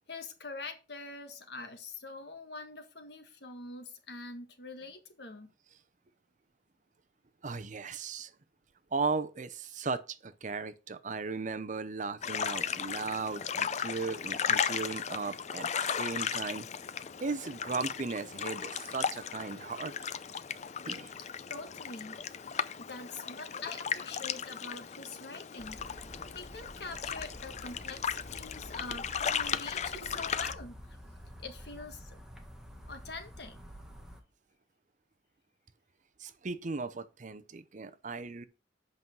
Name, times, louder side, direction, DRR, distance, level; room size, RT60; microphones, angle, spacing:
voice 1, 0.1-5.5 21.5-22.2 22.8-25.8 26.3-30.8 31.4-32.2 32.9-33.8, left 3 dB, 65° left, 1.7 m, -44 dB
voice 2, 7.4-8.3 8.9-16.7 17.2-19.9 20.8-21.1 29.5-29.6 29.9-30.1 36.2-38.5, right 4 dB, 45° right, 0.7 m, -36 dB
sound 1, 12.2-30.5, left 7 dB, 40° left, 0.5 m, -36 dB
sound 2, 25.6-34.2, equal, 5° right, 1.6 m, -49 dB
8.3 x 5.5 x 6.0 m
head